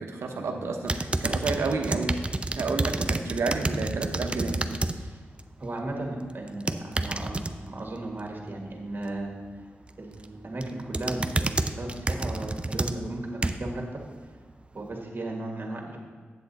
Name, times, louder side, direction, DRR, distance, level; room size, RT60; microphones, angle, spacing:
voice 1, 0.0-2.2 2.6-4.6, right 3 dB, 85° right, 4 dB, 0.9 m, -30 dB
sound 1, 0.9-5.0 5.3-5.7 6.5-7.5 9.9-10.2 10.6-13.8 14.3-14.4, right 2 dB, 25° right, 0.5 m, -29 dB
voice 2, 5.6-9.3 10.0-14.0 14.7-16.0, right 2 dB, 50° right, 0 dB, 1.7 m, -35 dB
7.8 x 7.7 x 4.1 m, 1.5 s
cardioid pair, 55°, 4 cm